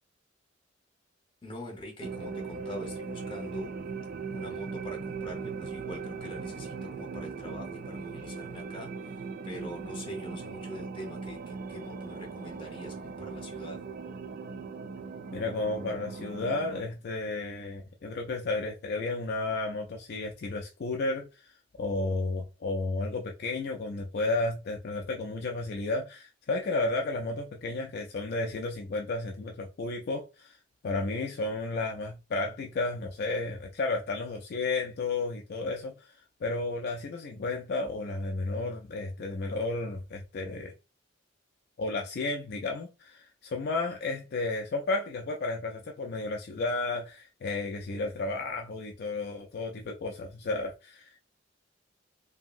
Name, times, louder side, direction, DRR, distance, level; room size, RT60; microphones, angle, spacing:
voice 1, 1.4-3.8 4.3-13.9, equal, 30° left, 1.0 m, -43 dB
sound 1, 2.0-16.8, right 5 dB, 50° right, 0.3 m, -39 dB
voice 2, 15.3-21.5 21.8-30.6 30.8-36.2 36.4-40.7 41.8-51.2, left 3 dB, 55° left, 0.4 m, -32 dB
2.8 x 2.7 x 2.5 m
head